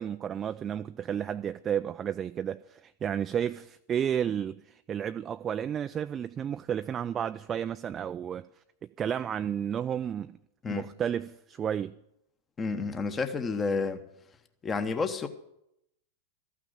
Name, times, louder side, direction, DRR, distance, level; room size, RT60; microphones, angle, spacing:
voice 1, 0.0-8.5 9.0-10.4 10.7-11.9, right 9 dB, 25° right, 0.3 m, -32 dB
voice 2, 12.6-14.0 14.6-15.3, left 4 dB, 20° left, 1.0 m, -30 dB
14.0 x 6.2 x 8.7 m
figure-of-eight pair, 95°, 0 cm